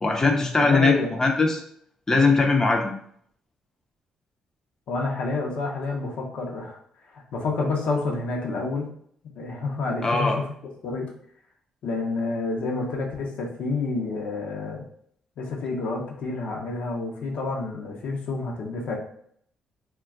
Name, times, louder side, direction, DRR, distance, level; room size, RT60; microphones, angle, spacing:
voice 1, 0.0-1.6 2.1-2.9 10.0-10.4, left 3 dB, 25° left, 2 dB, 0.5 m, -20 dB
voice 2, 0.7-1.1 4.9-6.8 7.1-8.9 9.4-10.5 10.8-11.1 11.8-14.8 15.4-19.0, left 3 dB, 70° left, 0 dB, 0.6 m, -29 dB
2.2 x 2.2 x 3.6 m, 0.64 s
supercardioid pair, 60°, 2 cm